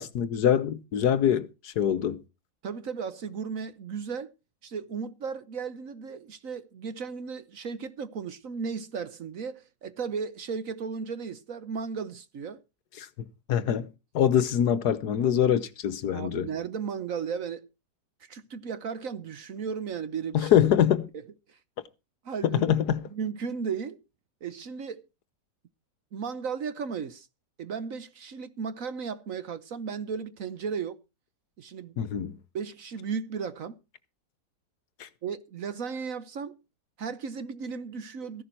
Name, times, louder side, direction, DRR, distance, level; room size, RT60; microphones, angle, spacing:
voice 1, 0.0-2.2 13.0-13.1 13.5-13.9 14.1-16.5 20.3-21.1 22.4-23.0 32.0-32.3 35.0-35.1, left 9 dB, 65° left, 1.4 m, -24 dB
voice 2, 2.6-4.3 4.6-12.6 16.1-17.7 18.3-20.5 21.5-21.6 22.2-22.6 23.1-24.0 24.4-25.0 26.1-27.3 27.6-31.0 31.6-31.9 32.5-33.8 35.2-36.6 37.0-38.4, right 6 dB, 55° right, 1.2 m, -35 dB
15.0 x 11.0 x 4.5 m
omnidirectional pair, 1.9 m